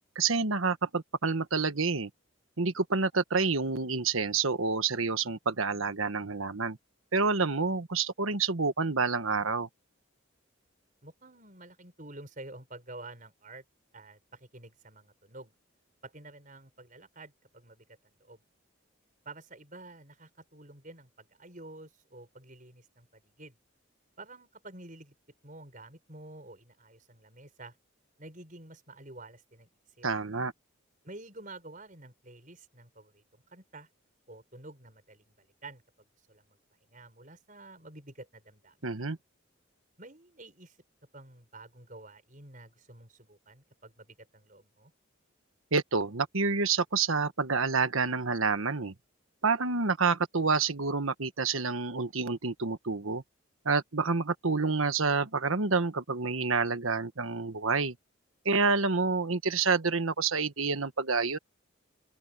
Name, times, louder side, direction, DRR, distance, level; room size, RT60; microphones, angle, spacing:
voice 1, 0.1-2.1 2.6-6.8 7.1-9.7 30.0-30.5 38.8-39.2 45.7-48.9 49.4-53.2 53.6-57.9 58.4-61.4, right 4 dB, 80° right, 1.4 m, -28 dB
voice 2, 11.0-13.6 13.9-15.5 16.0-17.8 18.2-18.4 19.2-23.5 24.2-25.1 25.4-27.8 28.2-29.7 30.0-30.1 31.0-33.2 33.5-33.9 34.3-36.6 36.9-38.9 40.0-40.8 41.1-44.9, right 2 dB, 40° right, 6.5 m, -49 dB
open air
head